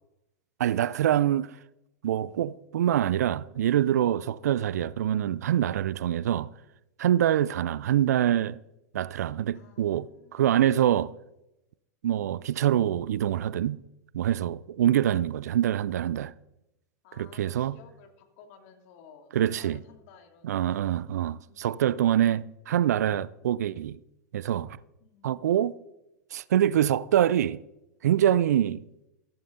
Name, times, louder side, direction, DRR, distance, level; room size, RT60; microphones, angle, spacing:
voice 1, 0.6-1.5 2.0-6.5 7.0-8.6 8.9-11.1 12.0-13.8 14.1-16.3 17.2-17.8 19.3-19.8 20.4-24.0 24.3-24.8 25.2-25.8 26.3-27.6 28.0-28.9, right 11 dB, 70° right, 0.5 m, -25 dB
voice 2, 9.5-10.6 17.0-21.2 21.5-21.9 25.0-25.5, left 7 dB, 55° left, 2.6 m, -56 dB
14.5 x 14.0 x 3.9 m
hypercardioid pair, 95°, 9 cm